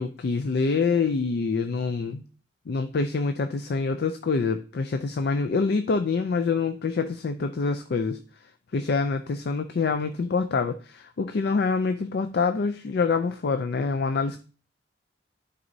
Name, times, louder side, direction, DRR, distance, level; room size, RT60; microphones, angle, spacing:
voice 1, 0.0-2.2 2.7-8.2 8.7-14.4, left 4 dB, 60° left, 8 dB, 0.4 m, -26 dB
10.5 x 4.1 x 2.7 m, 0.38 s
head